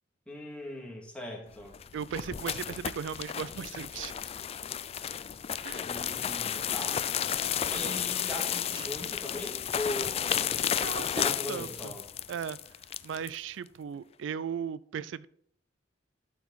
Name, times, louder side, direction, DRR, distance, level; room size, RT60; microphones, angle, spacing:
voice 1, 0.3-1.7 5.8-7.0 7.6-10.6 11.1-12.0, left 1 dB, 5° left, 2.2 m, -39 dB
sound 1, 1.6-13.3, left 9 dB, 35° left, 0.3 m, -33 dB
voice 2, 1.9-4.1 5.6-5.9 10.7-11.9 12.3-12.6 13.0-15.3, right 7 dB, 85° right, 0.3 m, -37 dB
sound 2, 5.7-9.4 11.5-12.0 13.7-13.8, right 2 dB, 30° right, 1.4 m, -52 dB
12.0 x 4.7 x 4.1 m
head